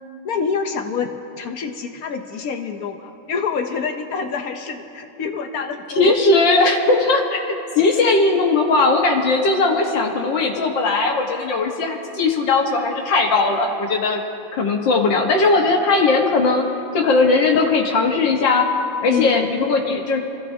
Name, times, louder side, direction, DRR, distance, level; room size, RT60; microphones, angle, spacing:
voice 1, 0.2-6.1 19.1-19.6, left 5 dB, 65° left, 6 dB, 1.0 m, -27 dB
voice 2, 6.0-14.2 14.5-16.7 16.9-18.7 19.0-20.2, left 3 dB, 85° left, 1 dB, 1.9 m, -18 dB
25.5 x 15.0 x 2.7 m, 2.7 s
omnidirectional pair, 2.0 m